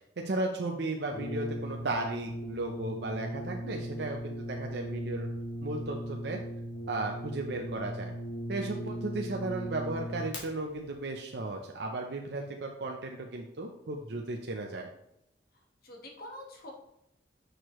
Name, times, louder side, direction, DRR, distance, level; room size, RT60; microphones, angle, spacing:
voice 1, 0.2-5.3 5.6-6.4 6.9-8.1 8.5-14.9, right 2 dB, 65° right, 1 dB, 0.6 m, -35 dB
Brass instrument, 1.1-10.4, equal, 75° left, 2.2 m, -38 dB
voice 2, 15.8-16.7, left 1 dB, 55° left, 1 dB, 1.3 m, -46 dB
6.4 x 6.4 x 3.0 m, 0.82 s
head